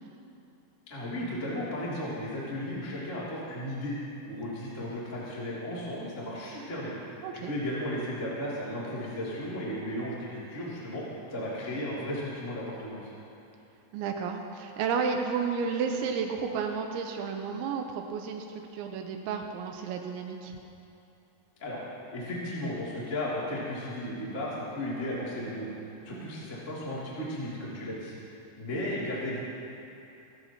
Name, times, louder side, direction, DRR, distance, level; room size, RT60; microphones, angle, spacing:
voice 1, 0.9-3.9 4.2-6.9 7.3-11.0 11.3-13.1 21.6-21.8 22.1-28.1 28.6-29.4, left 1 dB, 20° left, -8 dB, 2.5 m, -35 dB
voice 2, 7.2-7.5 13.9-18.5 18.7-20.6 26.1-26.3, right 6 dB, 90° right, 3 dB, 3.2 m, -32 dB
26.0 x 15.0 x 3.0 m, 2.8 s
omnidirectional pair, 5.3 m